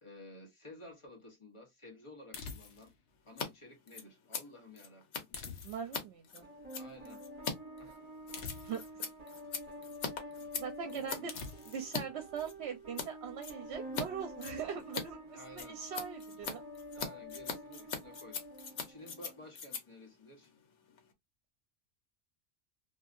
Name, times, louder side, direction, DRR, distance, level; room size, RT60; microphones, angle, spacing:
voice 1, 0.0-2.9 3.3-5.3 6.7-7.2 7.8-8.0 9.0-9.1 10.8-11.3 15.3-15.8 16.9-18.4 18.8-20.5, left 2 dB, 30° left, 0.9 m, -53 dB
sound 1, 2.3-3.0 5.3-6.1 8.3-9.0 11.3-11.9, left 5 dB, 65° left, 0.9 m, -46 dB
Scissors, 3.3-3.5 3.7-12.0 12.4-13.1 13.4-14.1 14.3-21.1, left 5 dB, 85° left, 1.1 m, -42 dB
voice 2, 5.6-6.5 8.6-8.8 10.6-11.3 11.7-16.6, right 7 dB, 70° right, 0.9 m, -41 dB
sound 2, 6.4-19.4, equal, 25° right, 1.6 m, -48 dB
2.7 x 2.6 x 2.4 m
omnidirectional pair, 1.2 m